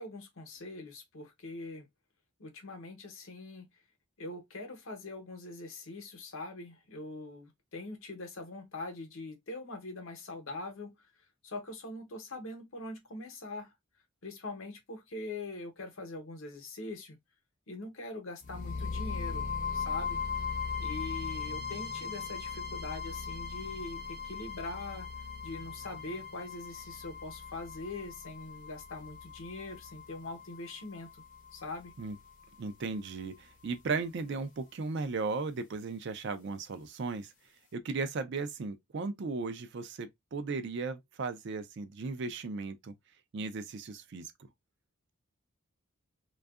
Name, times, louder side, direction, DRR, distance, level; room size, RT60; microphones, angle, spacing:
voice 1, 0.0-1.9 2.4-3.7 4.2-10.9 11.4-13.7 14.2-17.2 17.7-19.5 19.7-20.2 20.8-25.1 25.4-31.2 31.5-31.9, left 2 dB, 70° left, 0.8 m, -42 dB
sound 1, 18.4-32.4, left 5 dB, 35° left, 0.6 m, -39 dB
voice 2, 32.6-37.3 37.7-42.9 43.3-44.3, right 4 dB, 55° right, 0.4 m, -36 dB
2.6 x 2.3 x 2.3 m
head